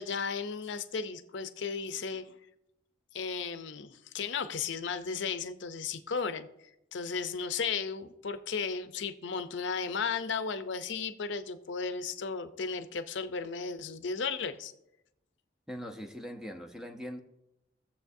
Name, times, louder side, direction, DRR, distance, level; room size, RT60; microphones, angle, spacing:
voice 1, 0.0-2.3 3.1-6.5 6.9-14.7, left 5 dB, 70° left, 10 dB, 0.6 m, -35 dB
voice 2, 15.7-17.2, equal, 5° right, 5 dB, 0.7 m, -41 dB
17.0 x 7.1 x 2.6 m, 0.85 s
head